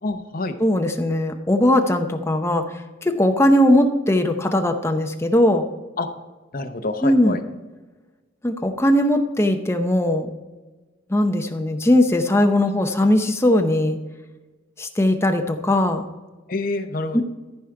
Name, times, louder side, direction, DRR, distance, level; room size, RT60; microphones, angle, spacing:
voice 1, 0.0-0.6 6.0-6.1 6.5-7.4 16.5-17.2, left 2 dB, 45° left, 6 dB, 0.8 m, -27 dB
voice 2, 0.6-2.7 3.0-5.7 7.0-7.4 8.4-10.3 11.1-14.0 14.8-16.0 17.1-17.2, left 1 dB, 15° left, 5 dB, 0.7 m, -19 dB
14.0 x 5.0 x 4.5 m, 1.2 s
head